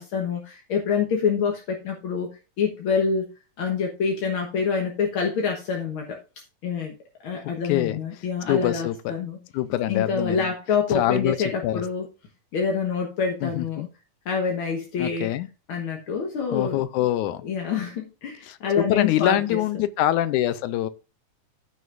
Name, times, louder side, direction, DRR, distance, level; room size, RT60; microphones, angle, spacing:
voice 1, 0.0-2.3 2.6-3.3 3.6-6.2 6.6-7.0 7.2-9.4 9.9-12.1 12.5-13.8 14.3-15.3 15.7-16.8 17.4-19.6, left 6 dB, 55° left, 1.7 m, -26 dB
voice 2, 7.6-9.1 9.5-10.5 10.9-11.4 11.6-11.8 13.4-13.9 15.0-15.5 16.5-17.4 18.4-20.9, left 13 dB, 80° left, 2.0 m, -25 dB
14.5 x 6.2 x 2.6 m
omnidirectional pair, 3.6 m